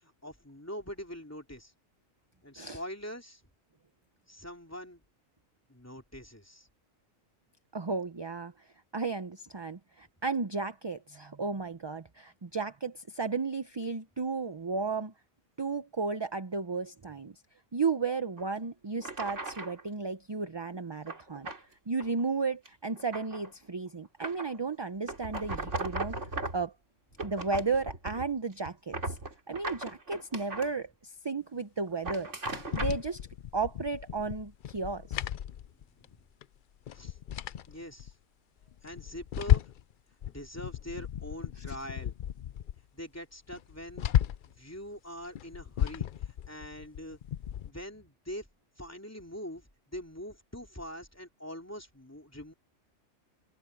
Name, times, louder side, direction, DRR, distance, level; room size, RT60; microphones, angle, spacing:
voice 1, 0.0-1.7 2.4-3.4 4.3-5.0 5.7-6.7 27.2-27.3 29.1-29.3 35.8-36.2 36.9-37.2 37.7-38.1 38.8-39.7 40.3-42.2 42.9-44.2 44.6-47.2 47.6-48.5 48.8-52.5, equal, 10° left, 3.1 m, -43 dB
voice 2, 7.7-8.5 8.9-15.1 15.6-17.3 17.7-21.5 21.9-26.2 26.5-26.7 27.2-29.2 29.5-32.3 32.7-33.3 33.5-35.2 41.7-41.8, right 4 dB, 25° right, 0.6 m, -34 dB
sound 1, 18.4-18.5 19.0-19.8 21.1-21.6 22.0-22.2 22.6-23.5 24.2-24.6 25.1-26.7 27.1-28.3 28.6-30.7 31.9-33.0, right 2 dB, 65° right, 3.5 m, -38 dB
sound 2, 32.5-36.2 36.4-36.5 36.9-38.1 38.6-39.9 40.2-42.8 43.1-43.2 43.5-44.6 45.2-47.7, left 11 dB, 65° left, 0.5 m, -33 dB
omnidirectional pair, 1.4 m